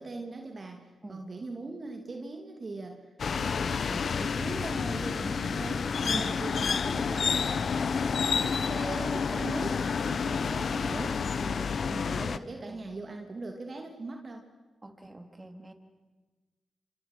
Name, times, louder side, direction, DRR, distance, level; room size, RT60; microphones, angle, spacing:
voice 1, 0.0-3.0 3.3-7.7 8.4-14.4, right 3 dB, 45° right, 3 dB, 2.9 m, -40 dB
sound 1, 3.2-12.4, left 5 dB, 60° left, 0.9 m, -29 dB
voice 2, 10.5-11.1 12.7-12.8 14.8-15.7, right 1 dB, 20° right, 5 dB, 3.8 m, -43 dB
27.5 x 25.5 x 6.3 m, 1.3 s
supercardioid pair, 50°, 0 cm